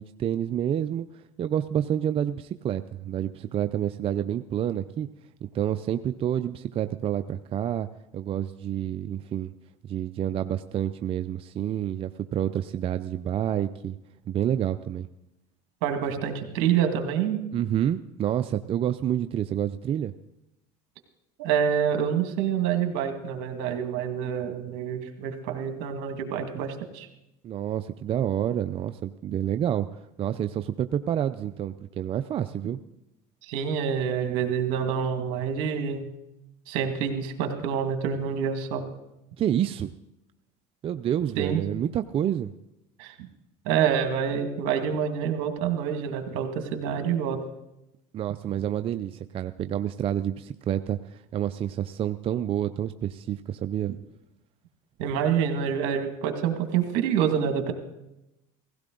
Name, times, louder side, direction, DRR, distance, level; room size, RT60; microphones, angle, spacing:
voice 1, 0.0-5.1 5.5-7.9 8.1-9.5 9.8-14.0 14.3-15.1 17.5-20.1 27.4-32.8 39.4-39.9 40.8-42.5 48.1-53.9, right 10 dB, 35° right, 10 dB, 0.5 m, -28 dB
voice 2, 15.8-17.4 21.4-27.1 33.5-36.0 36.7-38.8 41.4-41.6 43.0-43.3 43.7-47.4 55.0-57.7, right 8 dB, 70° right, 6 dB, 2.0 m, -27 dB
16.5 x 16.0 x 3.8 m, 0.91 s
supercardioid pair, 110°, 15 cm